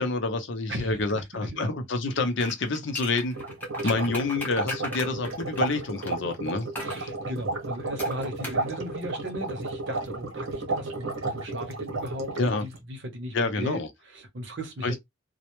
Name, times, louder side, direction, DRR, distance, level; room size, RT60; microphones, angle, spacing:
voice 1, 0.0-3.3 3.8-6.7 12.4-12.6 13.3-13.9 14.8-15.0, left 3 dB, 60° left, 0.5 m, -28 dB
voice 2, 0.7-1.7 3.8-4.1 6.8-15.0, equal, 60° right, 0.7 m, -37 dB
sound 1, 2.4-6.2 6.7-7.0 8.0-8.7 8.9-9.0, left 1 dB, 10° left, 0.5 m, -37 dB
sound 2, 3.3-12.8, right 2 dB, 85° right, 1.0 m, -33 dB
2.1 x 2.1 x 2.9 m
head